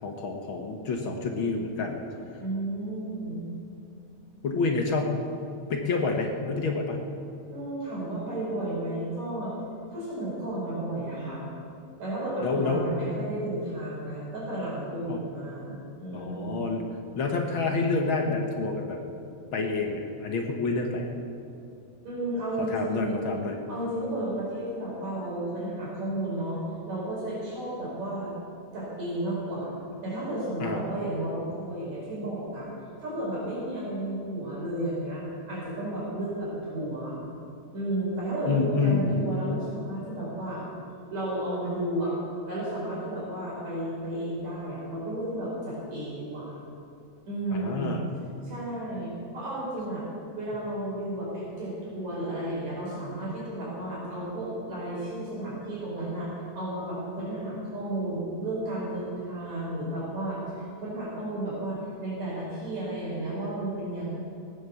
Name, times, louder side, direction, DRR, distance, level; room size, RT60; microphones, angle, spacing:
voice 1, 0.0-2.0 4.4-5.2 5.7-7.0 12.4-12.8 15.1-15.2 16.1-16.8 17.1-19.0 19.5-21.1 22.6-23.6 30.6-30.8 38.5-39.3 47.5-48.0, left 4 dB, 55° left, 2 dB, 1.7 m, -28 dB
voice 2, 2.4-3.5 7.5-9.5 9.9-11.4 12.0-16.7 22.0-23.3 23.7-26.6 26.9-28.3 28.7-29.7 30.0-32.7 33.0-37.2 37.7-40.6 41.1-42.1 42.5-46.6 47.3-48.0 48.4-50.0 50.4-64.2, right 1 dB, 65° right, -6 dB, 6.1 m, -33 dB
18.5 x 9.4 x 7.0 m, 2.5 s
omnidirectional pair, 3.4 m